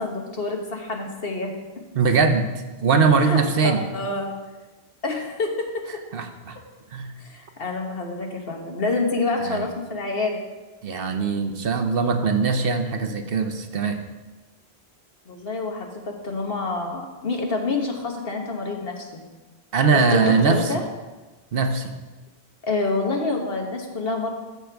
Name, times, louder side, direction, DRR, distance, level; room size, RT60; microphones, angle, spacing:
voice 1, 0.0-1.5 3.2-4.3 5.0-5.7 7.2-10.4 15.3-19.2 19.9-20.8 22.6-24.3, left 3 dB, 65° left, 1 dB, 1.5 m, -27 dB
voice 2, 1.9-2.5 2.8-3.8 6.1-6.6 6.9-7.1 9.4-9.7 10.8-14.0 19.7-20.6 21.5-21.9, right 5 dB, 65° right, 6 dB, 0.9 m, -21 dB
13.5 x 6.5 x 3.5 m, 1.2 s
omnidirectional pair, 1.1 m